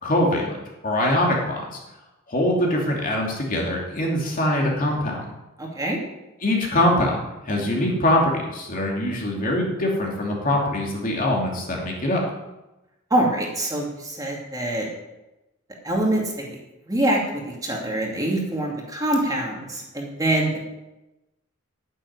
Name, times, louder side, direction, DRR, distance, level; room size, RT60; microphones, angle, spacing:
voice 1, 0.0-0.5 0.8-1.6 2.3-5.2 6.4-7.2 7.4-12.2, left 1 dB, 40° left, -1 dB, 2.9 m, -23 dB
voice 2, 5.6-6.0 13.1-14.9 15.8-16.6 16.9-20.6, right 1 dB, 15° right, -1 dB, 2.5 m, -24 dB
10.0 x 7.7 x 9.6 m, 1.0 s
head